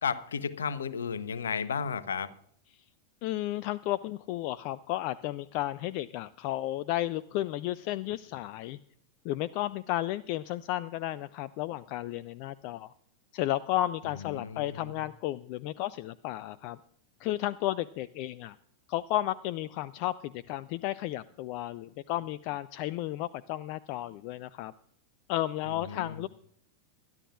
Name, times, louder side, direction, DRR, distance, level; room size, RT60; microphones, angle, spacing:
voice 1, 0.0-2.3 14.4-14.6 25.9-26.1, left 6 dB, 65° left, 16 dB, 0.8 m, -33 dB
voice 2, 3.2-8.8 9.2-12.9 13.3-16.8 17.2-18.6 18.9-24.7 25.3-26.3, left 14 dB, 45° left, 19 dB, 0.4 m, -33 dB
22.5 x 12.0 x 2.4 m, 0.67 s
figure-of-eight pair, 90°, 0 cm